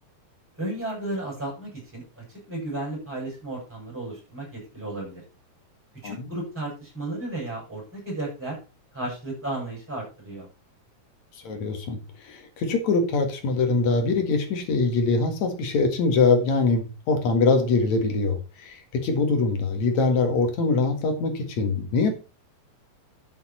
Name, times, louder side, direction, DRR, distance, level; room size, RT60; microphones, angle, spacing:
voice 1, 0.6-5.2 6.0-8.6 8.9-10.5, right 2 dB, 5° right, -2 dB, 6.3 m, -34 dB
voice 2, 11.4-12.0 12.3-22.1, left 3 dB, 70° left, 5 dB, 3.1 m, -23 dB
11.0 x 7.1 x 4.3 m, 0.31 s
omnidirectional pair, 3.3 m